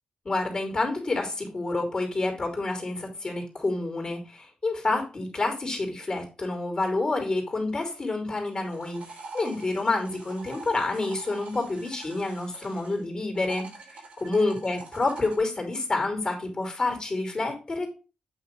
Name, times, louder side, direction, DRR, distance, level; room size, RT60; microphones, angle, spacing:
voice 1, 0.2-17.9, left 2 dB, 40° left, 3 dB, 2.6 m, -28 dB
sound 1, 8.4-13.0 13.3-15.4, right 3 dB, 90° right, 2.6 m, -45 dB
8.1 x 3.0 x 5.3 m, 0.33 s
cardioid pair, 75°, 2 cm